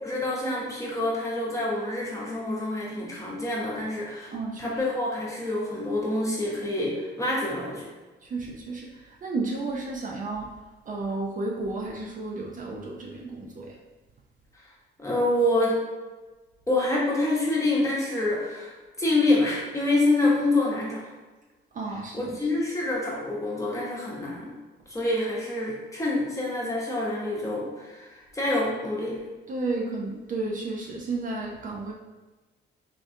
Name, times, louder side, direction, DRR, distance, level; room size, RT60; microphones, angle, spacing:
voice 1, 0.0-4.3 4.6-7.9 14.5-14.7 15.0-15.8 16.7-21.1 22.1-24.6 24.9-29.2, left 2 dB, 15° left, -4 dB, 0.9 m, -27 dB
voice 2, 4.3-4.8 8.2-10.6 10.9-13.8 21.7-22.4 29.5-31.9, right 3 dB, 40° right, -1 dB, 0.4 m, -32 dB
3.5 x 2.2 x 2.6 m, 1.2 s
cardioid pair, 90°, 20 cm